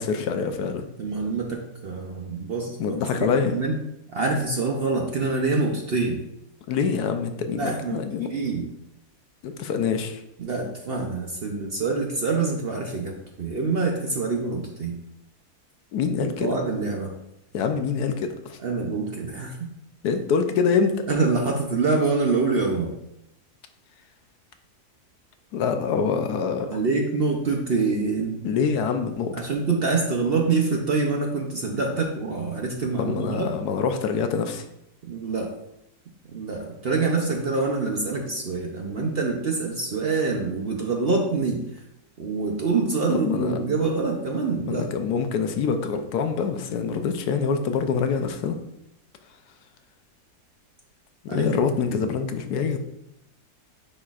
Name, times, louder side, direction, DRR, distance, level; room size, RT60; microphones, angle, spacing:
voice 1, 0.0-0.8 2.8-3.5 6.7-8.3 9.4-10.2 15.9-16.5 17.5-18.6 20.0-21.0 25.5-26.8 28.4-29.3 33.0-34.6 43.1-43.6 44.7-48.6 51.2-52.8, left 6 dB, 80° left, 7 dB, 1.2 m, -25 dB
voice 2, 1.0-3.7 4.1-6.2 7.5-8.0 8.3-8.6 10.4-15.0 16.2-17.1 18.6-19.7 21.1-22.9 26.7-28.4 29.3-33.5 35.1-35.5 36.3-41.9 42.2-44.8 51.3-51.5 51.9-52.0, right 4 dB, 55° right, 1 dB, 0.7 m, -26 dB
9.9 x 4.2 x 2.4 m, 0.82 s
omnidirectional pair, 1.7 m